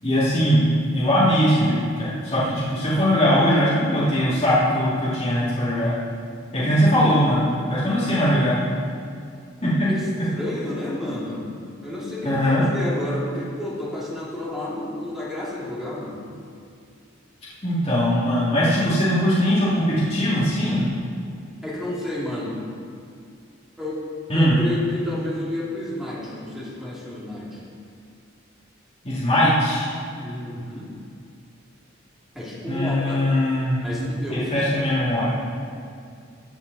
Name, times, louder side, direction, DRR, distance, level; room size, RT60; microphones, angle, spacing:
voice 1, 0.0-5.9 6.5-8.6 9.6-9.7 12.2-12.6 17.6-20.9 24.3-24.6 29.0-29.9 32.7-33.8 34.3-35.3, equal, 30° left, -11 dB, 2.7 m, -20 dB
voice 2, 9.9-11.5 11.8-16.2 21.6-22.6 23.8-24.0 24.3-27.6 30.1-30.9 32.3-33.2 33.8-34.6, left 1 dB, ahead, -7 dB, 2.5 m, -31 dB
15.0 x 8.2 x 4.2 m, 2.4 s
head